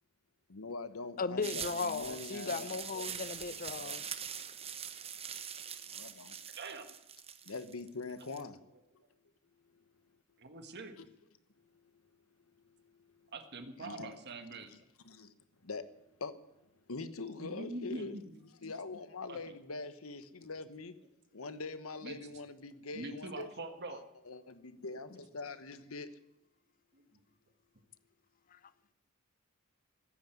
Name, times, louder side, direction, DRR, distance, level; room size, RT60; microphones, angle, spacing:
voice 1, 0.5-4.4 5.9-6.3 7.5-8.6 13.8-14.1 15.1-15.3 15.6-15.9 16.2-16.4 16.9-18.2 18.6-20.9 21.3-23.5 23.9-24.0 24.3-26.1, left 3 dB, 80° left, 1.2 m, -43 dB
voice 2, 1.2-4.2, left 4 dB, 40° left, 0.6 m, -37 dB
sound 1, 1.4-8.4, right 8 dB, 30° right, 0.9 m, -43 dB
voice 3, 6.6-6.9 10.4-10.9 13.3-14.7 17.4-18.3 19.3-19.5 22.0-22.2 22.9-24.0 26.9-27.0, right 2 dB, 55° right, 1.6 m, -44 dB
15.0 x 9.4 x 9.2 m
head